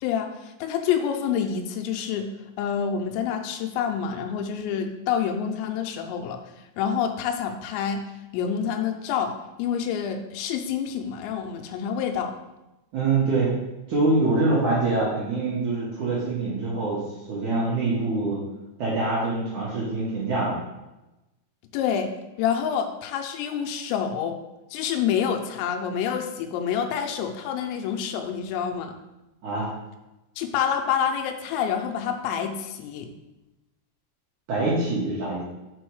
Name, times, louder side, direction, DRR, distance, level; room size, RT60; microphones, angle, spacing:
voice 1, 0.0-2.3 2.6-6.4 6.8-8.0 8.3-9.3 9.6-12.3 21.7-22.1 22.4-24.4 24.7-28.9 30.4-33.1, left 8 dB, 85° left, 4 dB, 2.9 m, -27 dB
voice 2, 12.9-13.5 13.9-17.0 17.3-18.4 18.8-20.6 29.4-29.7 34.5-35.4, right 3 dB, 65° right, -8 dB, 2.0 m, -24 dB
6.2 x 4.3 x 4.7 m, 1.0 s
omnidirectional pair, 5.3 m